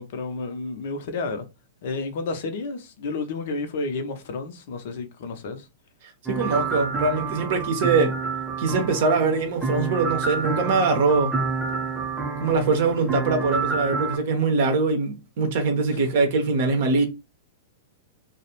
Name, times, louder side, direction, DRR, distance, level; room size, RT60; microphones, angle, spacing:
voice 1, 0.0-1.5 1.8-5.7 15.9-16.0, left 3 dB, 55° left, 0.5 m, -31 dB
voice 2, 6.0-8.1 8.6-11.3 12.4-17.0, right 4 dB, 55° right, 0.6 m, -23 dB
sound 1, 6.3-14.2, right 4 dB, 5° right, 0.7 m, -28 dB
2.3 x 2.0 x 2.9 m
figure-of-eight pair, 100°, 0 cm